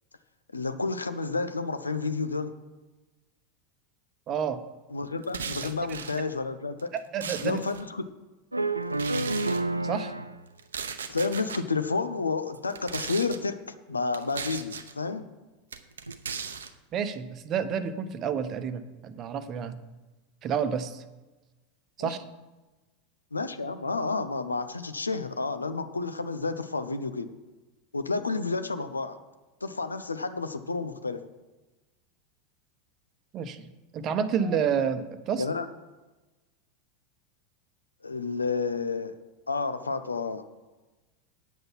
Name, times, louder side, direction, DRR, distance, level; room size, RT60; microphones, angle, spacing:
voice 1, 0.5-2.5 4.9-6.9 7.4-8.0 11.1-13.5 13.9-15.3 22.0-22.1 23.3-27.3 27.9-29.2 29.6-31.2 35.4-35.6 38.0-39.1 39.5-40.4, left 4 dB, 80° left, 10 dB, 0.7 m, -30 dB
voice 2, 4.3-4.6 6.9-7.6 9.8-10.1 16.9-19.8 20.4-21.0 22.0-22.2 33.3-33.7 33.9-35.5, right 7 dB, 35° right, 11 dB, 0.9 m, -29 dB
sound 1, 5.2-6.2 6.8-7.8 8.9-9.6 10.6-11.6 12.6-13.4 14.1-14.9 15.7-16.7, right 6 dB, 70° right, 0.7 m, -37 dB
sound 2, 8.5-10.4 12.5-12.6 13.9-14.0 14.3-14.4 16.1-16.4, right 2 dB, 85° right, 0.4 m, -29 dB
9.3 x 7.9 x 5.8 m, 1.1 s
figure-of-eight pair, 85°, 0 cm